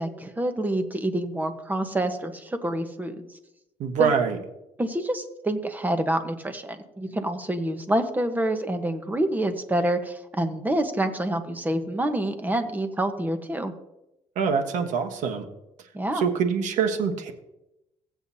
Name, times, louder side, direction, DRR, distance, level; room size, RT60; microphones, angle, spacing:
voice 1, 0.0-3.2 4.0-4.1 4.8-13.7 15.9-16.2, right 1 dB, 15° right, 7 dB, 1.1 m, -27 dB
voice 2, 3.8-4.4 14.3-15.5 16.1-17.3, right 6 dB, 75° right, 6 dB, 1.2 m, -24 dB
16.0 x 8.1 x 2.8 m, 0.90 s
cardioid pair, 110°, 13 cm